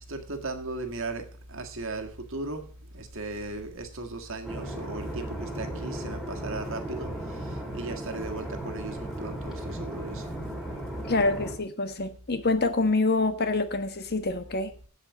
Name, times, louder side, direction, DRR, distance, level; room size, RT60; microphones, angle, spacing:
voice 1, 0.1-2.7 2.9-10.2, right 2 dB, 65° right, 1.7 m, -37 dB
sound 1, 4.4-11.5, right 1 dB, ahead, 2.9 m, -36 dB
voice 2, 11.0-14.7, left 3 dB, 50° left, 1.4 m, -26 dB
8.1 x 8.1 x 7.4 m
head